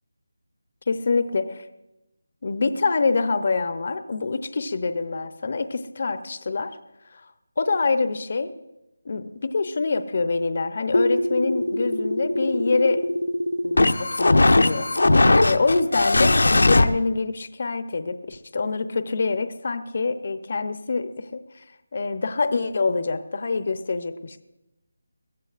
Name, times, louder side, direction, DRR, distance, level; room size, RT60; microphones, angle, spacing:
voice 1, 0.9-1.5 2.4-6.7 7.1-7.2 7.6-8.5 9.1-13.0 13.6-14.9 15.4-21.6 21.9-24.4, left 4 dB, 45° left, 10 dB, 0.7 m, -25 dB
sound 1, 10.9-16.8, left 2 dB, 75° left, 0.8 m, -20 dB
22.0 x 15.0 x 2.5 m, 0.96 s
figure-of-eight pair, 170°, 0 cm